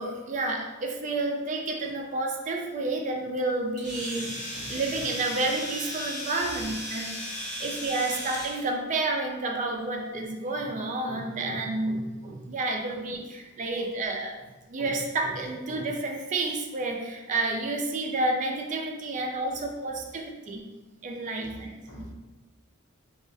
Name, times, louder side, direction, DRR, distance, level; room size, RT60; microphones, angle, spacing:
voice 1, 0.0-7.1 7.6-14.4 14.7-20.6 21.0-22.1, right 2 dB, 35° right, 1 dB, 0.4 m, -30 dB
Domestic sounds home sounds, 3.8-8.6, equal, 35° left, 1.1 m, -36 dB
voice 2, 21.4-22.1, equal, 80° left, -3 dB, 0.7 m, -46 dB
2.8 x 2.3 x 2.5 m, 1.1 s
head